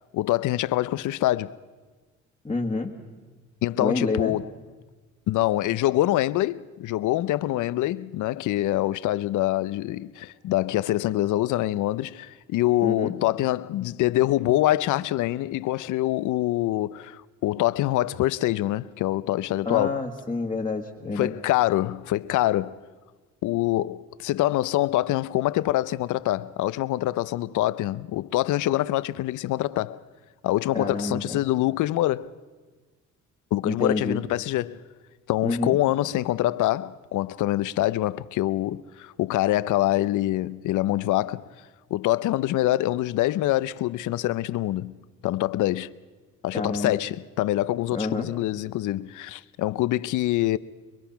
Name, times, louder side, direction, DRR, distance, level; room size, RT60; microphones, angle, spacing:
voice 1, 0.1-1.5 3.6-4.5 5.3-20.0 21.1-22.7 23.4-30.0 30.4-32.3 33.5-34.8 35.3-41.5 41.9-45.0 45.2-45.9 46.4-50.6, left 15 dB, 80° left, 0.6 m, -25 dB
voice 2, 2.4-2.9 3.8-4.3 12.8-13.1 19.6-21.3 30.7-31.4 33.6-34.2 35.4-35.8 46.5-47.0 47.9-48.3, left 3 dB, 15° left, 1.6 m, -28 dB
24.0 x 22.5 x 5.8 m
cardioid pair, 90°, 30 cm